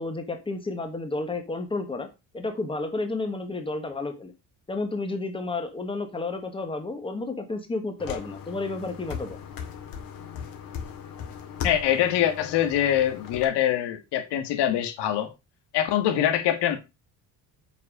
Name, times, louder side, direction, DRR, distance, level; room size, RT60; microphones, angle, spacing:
voice 1, 0.0-2.1 2.3-4.3 4.7-9.4, left 3 dB, 15° left, 1.4 m, -31 dB
sound 1, 8.0-13.4, left 7 dB, 55° left, 2.2 m, -37 dB
voice 2, 11.6-15.3 15.7-16.8, left 11 dB, 80° left, 1.8 m, -24 dB
7.9 x 5.8 x 4.9 m
cardioid pair, 165°, 40 cm